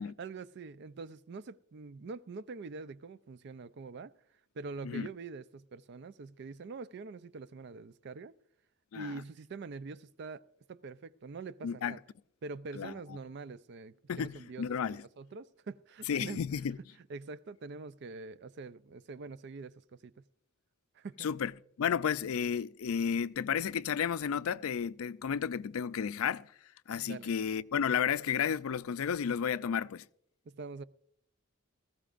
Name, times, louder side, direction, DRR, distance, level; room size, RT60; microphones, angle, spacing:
voice 1, 0.2-4.1 4.6-8.3 8.9-12.0 12.4-16.4 17.1-20.1 20.9-21.3 26.9-27.3 30.5-30.8, right 4 dB, 55° right, 0.4 m, -45 dB
voice 2, 11.6-12.0 12.8-12.9 14.1-15.0 16.1-16.8 21.2-21.5 21.8-26.5 26.9-30.0, left 7 dB, 90° left, 0.4 m, -32 dB
20.0 x 15.0 x 2.5 m
head